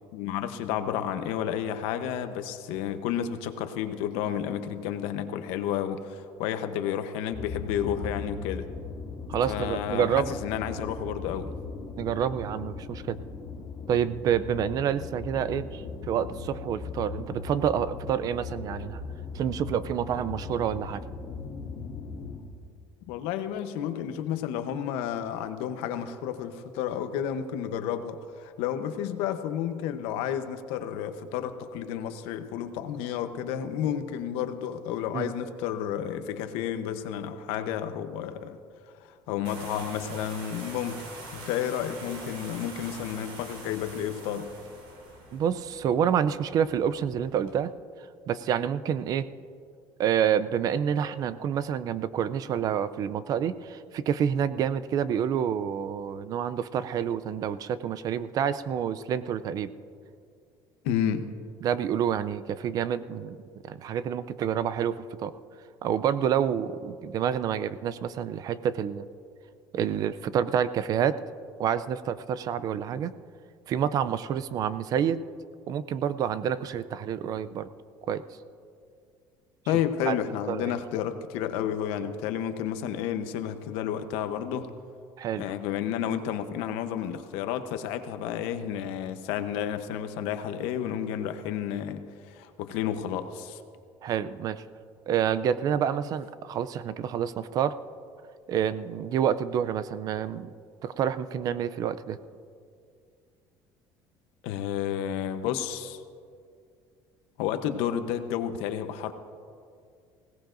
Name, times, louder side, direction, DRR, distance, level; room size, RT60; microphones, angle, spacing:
voice 1, 0.1-8.7 9.5-11.5 23.0-38.6 39.0-41.0 41.3-44.5 60.8-61.3 79.7-84.7 85.4-93.6 104.4-106.0 107.4-109.1, left 9 dB, 85° left, 9 dB, 0.9 m, -31 dB
sound 1, 7.3-22.4, left 5 dB, 40° left, 2.4 m, -39 dB
voice 2, 9.3-10.3 12.0-13.2 13.9-19.0 19.3-21.0 35.1-35.3 45.3-47.7 48.3-49.3 50.0-59.7 61.6-63.4 63.7-65.3 65.8-69.0 69.7-71.2 71.6-73.1 73.7-75.2 75.7-77.7 78.1-78.2 80.1-80.2 80.5-80.8 85.2-85.5 94.0-94.6 95.1-97.8 98.5-100.5 100.8-102.2, right 8 dB, 40° right, 14 dB, 0.4 m, -28 dB
sound 2, 39.4-47.6, right 2 dB, 75° right, 3.9 m, -45 dB
20.0 x 17.0 x 2.6 m, 2.3 s
cardioid pair, 160°, 10 cm